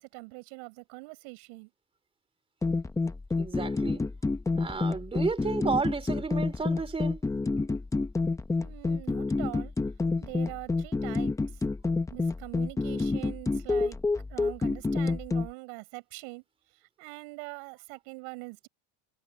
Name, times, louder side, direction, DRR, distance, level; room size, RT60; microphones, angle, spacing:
voice 1, 0.0-1.7 8.6-9.7 10.2-11.3 12.1-14.0 14.3-16.4 17.0-18.7, right 32 dB, 80° right, 6.2 m, -43 dB
sound 1, 2.6-15.5, left 3 dB, 5° left, 0.7 m, -29 dB
voice 2, 3.4-4.0 4.6-7.2, right 4 dB, 15° right, 3.7 m, -32 dB
cardioid pair, 165°, 42 cm